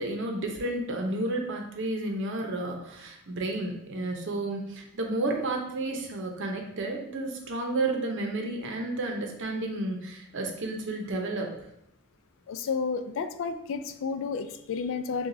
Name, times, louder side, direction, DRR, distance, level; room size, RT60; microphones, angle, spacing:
voice 1, 0.0-11.6, right 2 dB, 65° right, 2 dB, 0.8 m, -31 dB
voice 2, 12.5-15.3, left 5 dB, 65° left, 10 dB, 0.4 m, -31 dB
6.9 x 2.4 x 2.6 m, 0.80 s
head